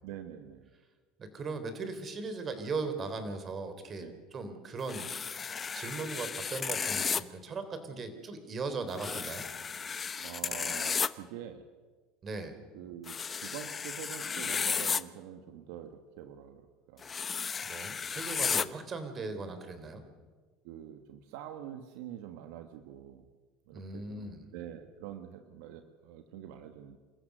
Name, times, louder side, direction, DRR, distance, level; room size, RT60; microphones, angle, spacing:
voice 1, 0.0-0.7 4.0-4.1 10.2-11.6 12.7-13.2 13.4-17.1 18.4-18.6 20.6-23.3 23.7-27.0, right 10 dB, 75° right, 8 dB, 1.4 m, -46 dB
voice 2, 1.2-5.4 5.7-9.5 12.2-12.6 17.6-20.0 23.7-24.5, right 3 dB, 35° right, 9 dB, 3.7 m, -38 dB
sound 1, 4.9-7.2 8.9-11.1 13.1-15.0 17.0-18.6, left 6 dB, 30° left, 0.9 m, -33 dB
27.5 x 15.0 x 6.7 m, 1.4 s
hypercardioid pair, 85°, 0 cm